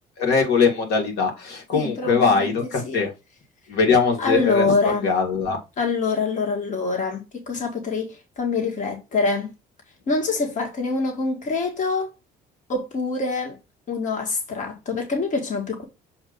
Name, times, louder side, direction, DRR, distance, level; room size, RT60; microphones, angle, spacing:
voice 1, 0.2-3.1 3.7-5.6, left 5 dB, 75° left, 2.2 m, -21 dB
voice 2, 1.7-3.0 4.2-5.1 5.8-9.5 10.1-12.1 12.7-13.6 13.9-15.8, left 3 dB, 45° left, 1.9 m, -25 dB
7.1 x 2.7 x 5.2 m
cardioid pair, 110°, 17 cm